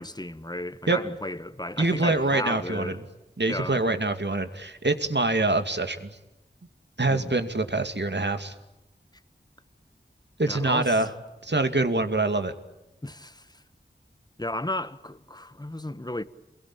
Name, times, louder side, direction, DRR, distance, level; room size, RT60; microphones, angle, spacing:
voice 1, 0.0-3.0 3.5-4.0 7.1-7.3 10.5-11.0 13.0-13.6 14.4-16.2, left 1 dB, 20° left, 1.4 m, -34 dB
voice 2, 1.8-3.0 3.4-6.2 7.0-8.5 10.4-11.1 11.4-12.5, right 2 dB, 65° right, 2.4 m, -25 dB
29.0 x 22.0 x 8.8 m
wide cardioid pair, 45°, 20 cm